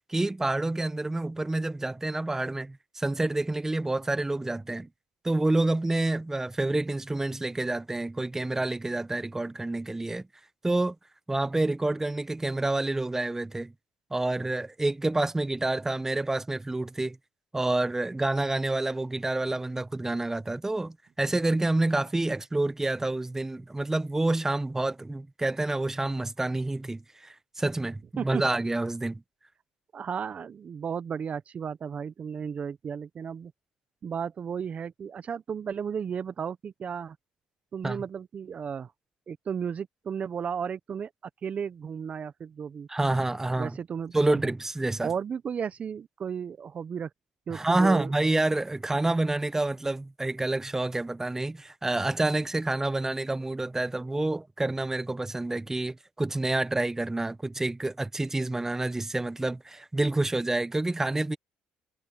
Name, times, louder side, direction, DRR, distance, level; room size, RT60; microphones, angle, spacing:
voice 1, 0.1-4.9 5.2-10.2 10.6-10.9 11.3-13.7 14.1-17.2 17.5-29.2 37.8-38.0 42.9-43.8 44.1-45.1 47.5-61.4, right 2 dB, 15° right, 1.1 m, -28 dB
voice 2, 29.9-33.5 34.0-37.2 37.7-38.9 39.3-41.1 41.4-42.9 43.5-44.5 45.0-47.1 47.5-48.1, right 7 dB, 45° right, 1.1 m, -34 dB
supercardioid pair, 70°, 3 cm